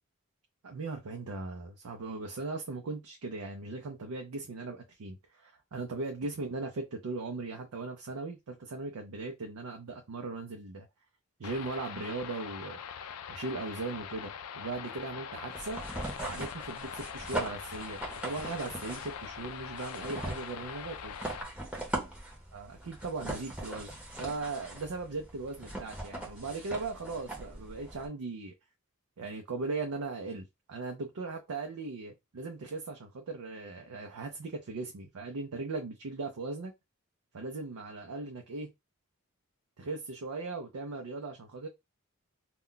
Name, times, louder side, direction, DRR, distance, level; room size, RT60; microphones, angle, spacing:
voice 1, 0.6-10.9 11.4-12.8 13.3-15.8 16.2-21.2 22.5-23.9 24.2-28.5 29.2-36.7 37.3-38.7 39.8-41.7, right 3 dB, 90° right, 0.5 m, -38 dB
sound 1, 11.4-21.4, left 8 dB, 85° left, 0.3 m, -43 dB
sound 2, 15.5-28.1, right 1 dB, 5° right, 0.8 m, -41 dB
2.2 x 2.2 x 3.7 m
head